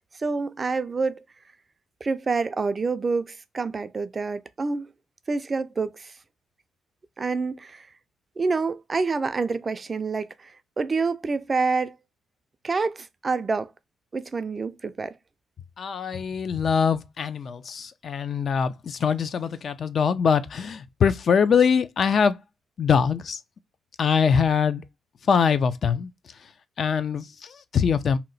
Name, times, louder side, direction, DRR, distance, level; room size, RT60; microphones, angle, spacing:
voice 1, 0.2-1.2 2.0-4.9 5.3-6.1 7.2-7.9 8.4-12.0 12.6-13.7 14.1-15.1, right 4 dB, 30° right, 0.3 m, -27 dB
voice 2, 15.8-22.4 22.8-23.4 24.0-24.8 25.3-26.1 26.8-28.2, left 6 dB, 50° left, 0.3 m, -23 dB
2.8 x 2.1 x 3.9 m
cardioid pair, 90°, 0 cm